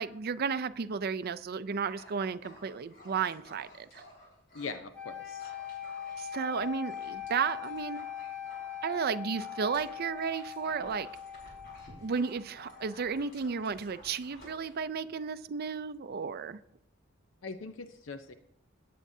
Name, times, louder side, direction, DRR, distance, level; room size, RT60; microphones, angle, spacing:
voice 1, 0.0-4.0 6.2-8.1 8.8-11.1 12.0-16.6, right 6 dB, 50° right, 13 dB, 0.5 m, -33 dB
Dog, 1.8-4.8 5.1-14.8, left 1 dB, 50° left, 5.2 m, -54 dB
voice 2, 4.5-5.5 17.4-18.3, left 4 dB, 75° left, 9 dB, 0.6 m, -41 dB
sound 1, 4.9-13.0, left 9 dB, 5° left, 2.7 m, -42 dB
17.0 x 9.2 x 2.7 m, 0.74 s
head